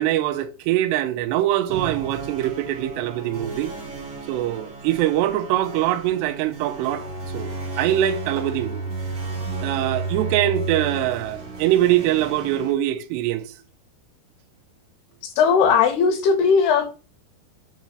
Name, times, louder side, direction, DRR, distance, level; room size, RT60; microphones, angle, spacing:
voice 1, 0.0-3.7 4.3-7.1 7.3-8.8 9.6-13.5, right 13 dB, 85° right, 2.8 m, -23 dB
sound 1, 1.7-12.7, right 3 dB, 35° right, 2.6 m, -33 dB
voice 2, 15.2-16.9, left 6 dB, 75° left, 3.1 m, -18 dB
6.5 x 4.0 x 6.2 m
omnidirectional pair, 4.9 m